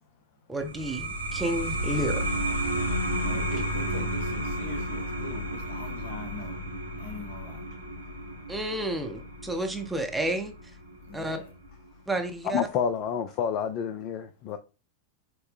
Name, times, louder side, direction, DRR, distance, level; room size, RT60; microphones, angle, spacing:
voice 1, 0.5-2.3 8.5-10.5 11.1-11.4 12.1-12.6, right 1 dB, 5° right, 0.6 m, -31 dB
sound 1, 0.6-11.7, right 1 dB, 80° right, 0.8 m, -32 dB
voice 2, 3.1-6.7 7.0-7.9 8.3-8.5 11.0-11.5, left 4 dB, 60° left, 1.1 m, -43 dB
voice 3, 12.5-14.6, left 7 dB, 40° left, 0.4 m, -29 dB
5.4 x 2.0 x 3.6 m
figure-of-eight pair, 90°, 0 cm